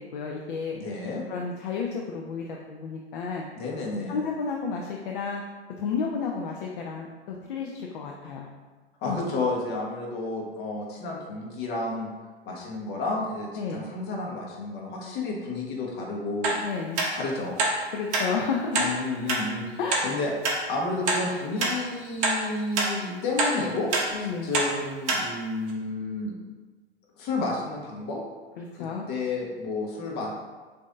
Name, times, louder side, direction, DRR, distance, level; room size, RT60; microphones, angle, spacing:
voice 1, 0.0-0.8 1.3-3.4 4.1-5.4 5.8-8.5 9.0-9.2 13.5-13.8 16.6-17.0 17.9-18.9 19.8-20.1 24.1-24.5 28.6-29.1, left 5 dB, 50° left, 0 dB, 0.5 m, -31 dB
voice 2, 0.7-1.2 3.6-4.1 9.0-12.1 12.5-16.6 17.1-17.5 18.8-20.3 20.7-26.3 27.2-28.2 28.7-30.3, left 3 dB, 30° left, -2 dB, 1.0 m, -31 dB
sound 1, 16.4-16.6 17.0-17.1 17.6-17.7 18.1-18.3 18.7-18.9 19.3-19.4 19.9-20.0 20.4-20.6 21.1-21.2 21.6-21.7 22.2-22.4 22.7-22.9 23.4-23.5 23.9-24.1 24.5-24.7 25.1-25.2 25.7-25.8, right 3 dB, 35° right, 0.8 m, -24 dB
6.2 x 2.6 x 2.5 m, 1.3 s
figure-of-eight pair, 105°, 33 cm